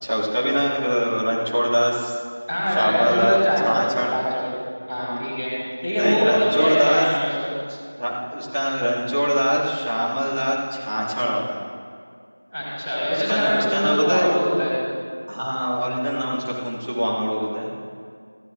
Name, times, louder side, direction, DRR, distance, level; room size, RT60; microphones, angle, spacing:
voice 1, 0.0-2.2 2.8-3.4 3.6-4.1 6.0-7.0 7.7-11.6 13.3-14.4 15.3-17.7, equal, 35° right, -6 dB, 2.4 m, -23 dB
voice 2, 2.5-3.8 4.1-4.5 4.9-5.5 5.8-7.5 12.5-14.8, equal, 5° right, -22 dB, 2.8 m, -22 dB
19.0 x 14.5 x 2.6 m, 2.2 s
figure-of-eight pair, 175°, 0 cm